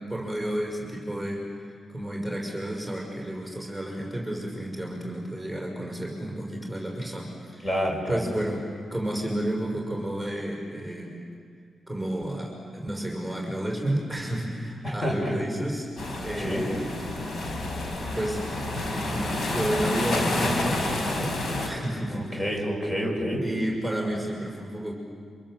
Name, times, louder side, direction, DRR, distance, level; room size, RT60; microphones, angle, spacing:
voice 1, 0.1-7.7 8.1-8.6 8.9-11.2 11.9-15.9 16.2-17.7 18.1-18.5 18.8-22.7 23.4-24.9, right 1 dB, 5° left, -1 dB, 5.7 m, -31 dB
voice 2, 7.6-8.2 14.8-15.4 16.4-16.7 22.1-23.4, equal, 25° left, 0 dB, 6.5 m, -28 dB
sound 1, 16.0-21.7, left 2 dB, 65° left, 4.6 m, -29 dB
28.0 x 26.0 x 7.8 m, 2.2 s
cardioid pair, 65°, 0 cm